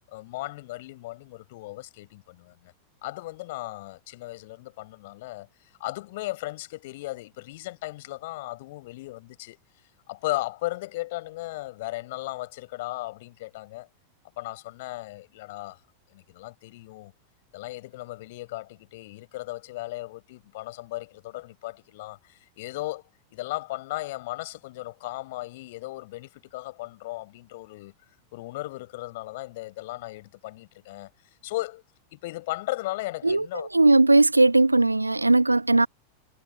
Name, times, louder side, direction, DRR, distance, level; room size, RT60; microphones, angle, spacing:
voice 1, 0.1-2.7 3.0-5.5 5.8-9.6 10.1-13.9 14.4-15.8 16.1-17.1 17.5-23.0 23.3-27.9 28.3-31.1 31.4-31.8 32.1-33.7, left 19 dB, 50° left, 4.7 m, -36 dB
voice 2, 33.7-35.9, right 2 dB, 85° right, 0.9 m, -18 dB
figure-of-eight pair, 90°, 0 cm